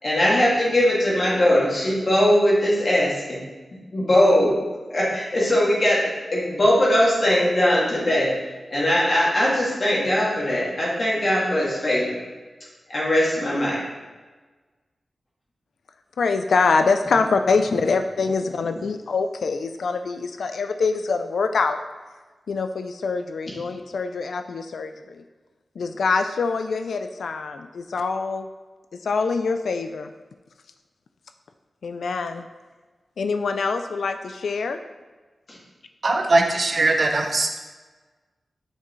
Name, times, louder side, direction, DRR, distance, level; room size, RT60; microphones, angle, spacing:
voice 1, 0.0-3.4 3.9-4.6 4.9-8.3 8.7-12.2 12.9-13.8 35.5-35.6, left 1 dB, 35° left, -6 dB, 2.1 m, -20 dB
voice 2, 16.2-21.8 22.5-25.2 25.8-28.5 29.0-30.1 31.8-32.5 33.2-34.8, left 4 dB, 85° left, 7 dB, 0.3 m, -24 dB
voice 3, 36.0-37.6, right 2 dB, 40° right, 3 dB, 0.7 m, -20 dB
8.3 x 5.8 x 3.1 m, 1.3 s
wide cardioid pair, 180°, 0 cm